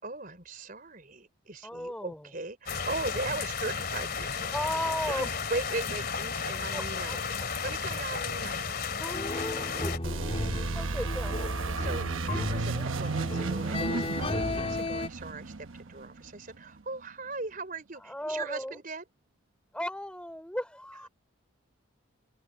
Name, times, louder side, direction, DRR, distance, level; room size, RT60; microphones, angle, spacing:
voice 1, 0.0-4.5 5.1-8.8 9.5-9.8 11.6-19.0, right 3 dB, 40° right, 4.6 m, -39 dB
voice 2, 1.6-2.3 4.5-5.3 6.7-7.2 9.0-10.2 10.7-11.6 12.7-13.3 18.0-18.8 19.7-21.1, left 1 dB, 5° left, 3.8 m, -36 dB
sound 1, 2.7-10.0, left 5 dB, 50° left, 2.8 m, -33 dB
sound 2, 9.1-15.1, left 2 dB, 30° left, 2.9 m, -35 dB
sound 3, 10.0-16.6, right 3 dB, 75° right, 1.0 m, -33 dB
head